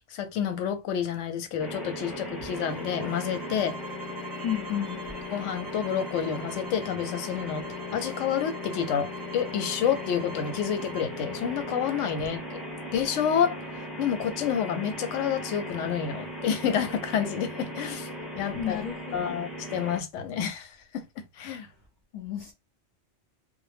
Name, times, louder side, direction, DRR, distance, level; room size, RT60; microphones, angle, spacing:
voice 1, 0.1-3.8 5.3-7.7 7.9-12.4 12.9-13.7 14.0-18.1 18.3-18.8 19.1-21.7, left 8 dB, 85° left, 0.9 m, -29 dB
sound 1, 1.6-20.0, left 1 dB, ahead, 0.7 m, -38 dB
sound 2, 2.5-11.1, right 4 dB, 55° right, 0.5 m, -45 dB
voice 2, 4.4-5.1 18.5-19.4 22.1-22.5, left 10 dB, 50° left, 0.7 m, -32 dB
2.1 x 2.0 x 3.2 m
omnidirectional pair, 1.2 m